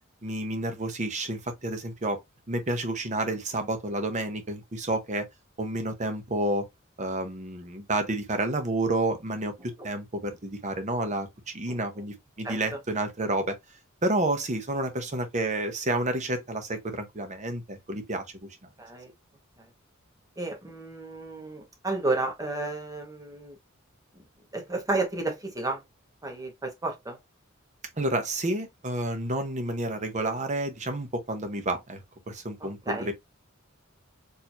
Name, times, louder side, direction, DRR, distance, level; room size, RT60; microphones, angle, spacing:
voice 1, 0.2-2.2 2.5-5.2 5.6-6.7 7.0-13.6 14.0-18.5 28.0-32.0 32.3-33.1, right 2 dB, 35° right, 0.9 m, -30 dB
voice 2, 12.4-12.8 18.8-19.1 20.4-23.6 24.5-25.8 26.2-27.2 32.6-33.1, right 2 dB, 15° right, 1.1 m, -32 dB
4.4 x 2.7 x 2.6 m
head